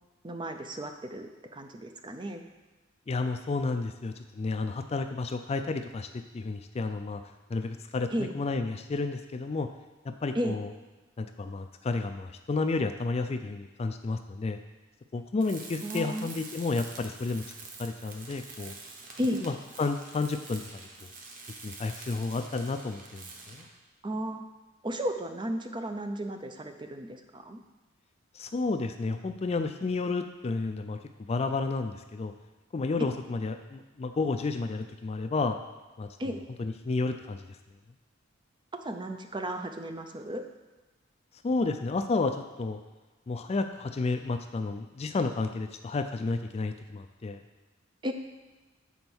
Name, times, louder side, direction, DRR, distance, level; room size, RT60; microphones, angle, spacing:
voice 1, 0.2-2.4 8.1-8.3 10.3-10.6 15.8-16.3 19.2-19.4 24.0-24.4 24.8-27.6 36.2-36.4 38.7-40.4 48.0-48.1, equal, 25° right, 6 dB, 0.5 m, -34 dB
voice 2, 3.1-6.1 6.3-7.2 7.5-9.7 10.0-10.7 11.2-14.6 15.1-17.4 17.8-18.7 19.4-21.1 21.6-23.6 28.3-31.0 31.3-32.3 32.7-35.6 36.0-36.3 36.6-37.4 41.4-42.8 43.3-47.4, left 3 dB, 30° left, 8 dB, 0.3 m, -31 dB
Tools, 15.4-23.8, right 3 dB, 40° right, 0.9 m, -46 dB
7.1 x 4.4 x 6.0 m, 1.2 s
head